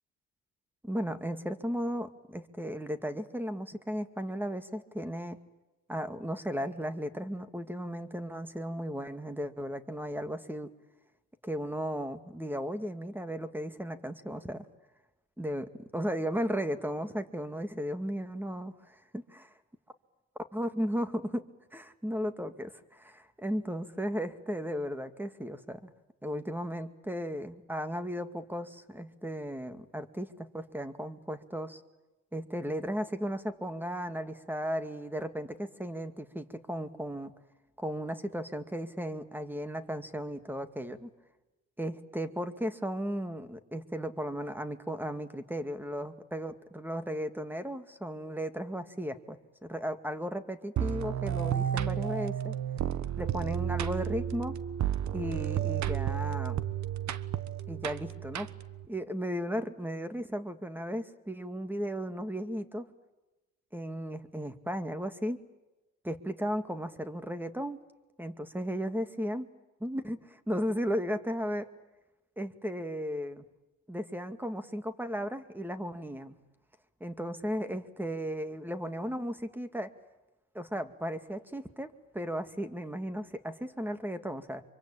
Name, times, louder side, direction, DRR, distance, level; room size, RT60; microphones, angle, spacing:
voice 1, 0.8-5.4 5.9-10.7 11.4-14.7 15.4-19.2 20.5-21.4 21.7-25.9 26.2-31.8 32.3-37.3 37.8-41.1 41.8-52.6 53.2-54.6 55.1-56.6 57.7-58.5 58.9-62.9 63.7-65.4 66.0-67.8 68.2-69.5 69.8-71.7 72.4-73.4 73.9-76.3 77.0-79.9 80.5-84.6, equal, 5° right, 10 dB, 2.2 m, -35 dB
sound 1, 50.8-58.9, right 10 dB, 65° right, 1.4 m, -32 dB
25.5 x 24.0 x 8.9 m, 1.1 s
cardioid pair, 90°, 30 cm